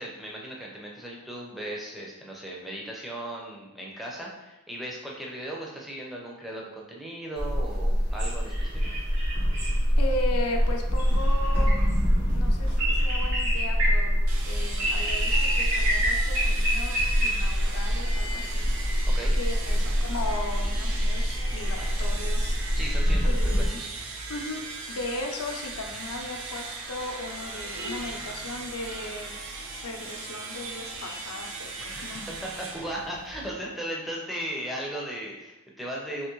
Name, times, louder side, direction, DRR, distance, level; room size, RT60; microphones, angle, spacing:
voice 1, 0.0-8.8 19.1-19.3 19.7-19.8 22.7-23.9 31.9-36.3, right 1 dB, ahead, -3 dB, 0.5 m, -37 dB
sound 1, 7.4-23.7, equal, 85° right, 1.3 m, -25 dB
voice 2, 10.0-11.8 12.3-19.0 19.3-22.5 23.3-23.8 24.3-29.3 29.8-32.4, left 2 dB, 85° left, 2 dB, 0.6 m, -36 dB
sound 2, 14.3-33.7, right 3 dB, 70° right, 0.5 m, -38 dB
3.5 x 2.9 x 3.0 m, 0.98 s
head